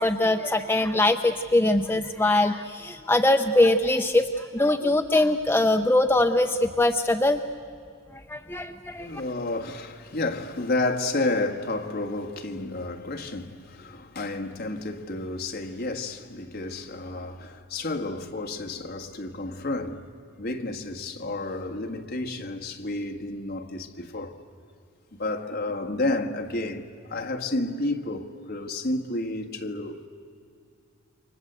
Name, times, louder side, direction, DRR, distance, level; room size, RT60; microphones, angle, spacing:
voice 1, 0.0-7.4 8.3-9.2, left 2 dB, 10° left, 0.6 m, -22 dB
voice 2, 9.0-20.0 20.4-24.4 25.1-30.1, left 2 dB, 45° left, 1.7 m, -31 dB
29.0 x 24.5 x 8.1 m
head